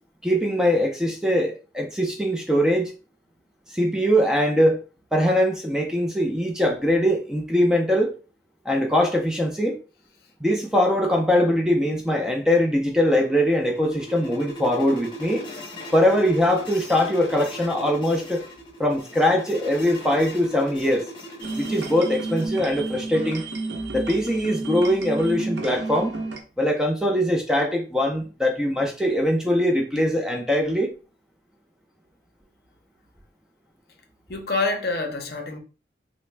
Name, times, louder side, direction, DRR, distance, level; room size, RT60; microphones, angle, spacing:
voice 1, 0.2-2.9 3.7-4.8 5.1-8.1 8.7-9.8 10.4-15.5 15.9-18.4 18.8-21.1 21.6-23.4 23.9-26.2 26.6-30.9, equal, 5° right, 0.4 m, -22 dB
sound 1, 13.0-22.5, equal, 25° left, 0.8 m, -38 dB
sound 2, 21.4-26.4, right 3 dB, 80° right, 0.7 m, -31 dB
voice 2, 34.3-35.6, left 3 dB, 55° left, 0.6 m, -26 dB
3.3 x 2.0 x 3.2 m
head